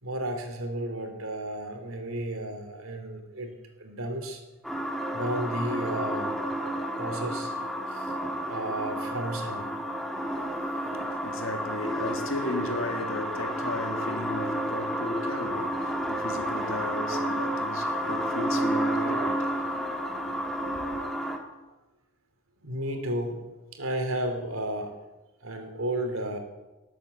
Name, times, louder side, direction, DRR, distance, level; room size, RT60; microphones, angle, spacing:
voice 1, 0.0-4.4 5.1-6.4 6.9-7.5 7.9-8.1 8.5-9.7 12.0-12.2 22.6-24.9 25.4-26.4, right 1 dB, 70° right, 3.0 m, -33 dB
sound 1, 4.6-21.4, equal, ahead, 1.5 m, -31 dB
voice 2, 10.7-20.0 20.3-21.0, left 2 dB, 65° left, 1.7 m, -36 dB
18.5 x 8.7 x 8.1 m
head